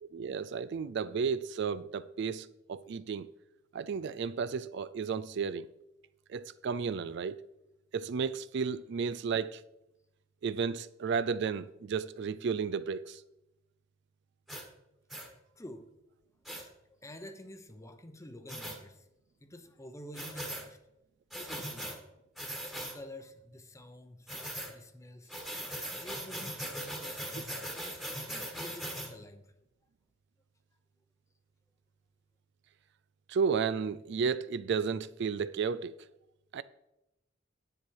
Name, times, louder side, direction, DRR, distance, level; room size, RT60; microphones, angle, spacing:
voice 1, 0.0-3.3 3.7-5.7 6.3-7.4 7.9-9.6 10.4-13.2 33.3-36.0 36.5-36.6, right 6 dB, 60° right, 0.4 m, -33 dB
sound 1, 14.5-14.6 15.1-15.3 16.4-16.6 18.5-18.8 20.1-20.6 21.3-22.0 22.4-23.0 24.3-24.7 25.3-29.1, equal, ahead, 1.4 m, -39 dB
voice 2, 15.5-15.9 16.4-16.7 17.0-19.1 19.4-20.8 21.3-22.0 22.7-24.3 24.7-25.3 26.0-27.7 28.2-29.5, left 1 dB, 15° left, 0.8 m, -49 dB
9.9 x 7.7 x 4.7 m
head